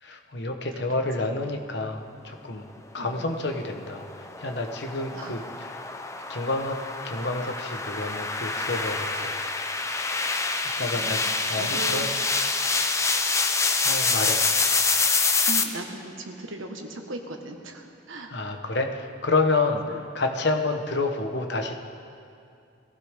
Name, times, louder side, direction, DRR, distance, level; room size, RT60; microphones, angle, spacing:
voice 1, 0.0-2.7 2.9-5.8 6.3-6.8 7.0-9.6 10.8-12.1 13.8-14.4 18.3-21.7, left 3 dB, 55° left, 4 dB, 1.2 m, -29 dB
voice 2, 3.0-3.3 5.1-5.3 10.9-11.1 11.6-12.1 15.5-18.3 19.8-20.0, right 2 dB, 80° right, 3 dB, 1.6 m, -38 dB
sound 1, 3.6-15.6, left 4 dB, 15° left, 0.6 m, -26 dB
21.5 x 15.0 x 3.7 m, 2.5 s
head